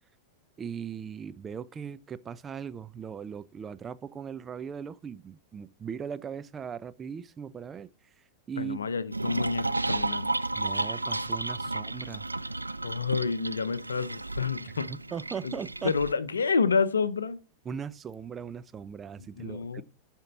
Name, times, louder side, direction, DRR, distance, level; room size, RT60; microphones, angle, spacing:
voice 1, 0.6-7.9 8.5-8.8 10.5-12.2 15.1-15.9 17.7-19.8, right 7 dB, 20° right, 0.6 m, -38 dB
voice 2, 8.6-10.3 12.8-14.9 15.4-15.5 15.8-17.4 19.4-19.8, left 5 dB, 75° left, 0.7 m, -29 dB
sound 1, 9.1-16.1, right 2 dB, 85° right, 0.3 m, -33 dB
12.0 x 4.5 x 3.9 m
figure-of-eight pair, 95°, 0 cm